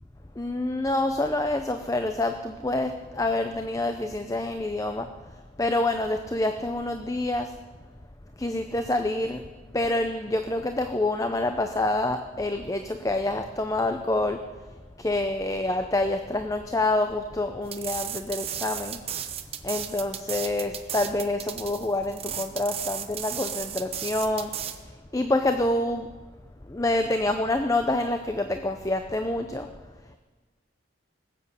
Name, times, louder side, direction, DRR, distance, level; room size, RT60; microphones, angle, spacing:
voice 1, 0.4-7.6 8.4-9.5 9.7-14.7 15.0-19.0 19.6-26.1 26.6-29.7 30.0-30.2, left 2 dB, 15° left, 7 dB, 0.6 m, -27 dB
sound 1, 17.7-24.8, right 9 dB, 30° right, 0.8 m, -34 dB
19.0 x 7.7 x 8.3 m, 1.4 s
head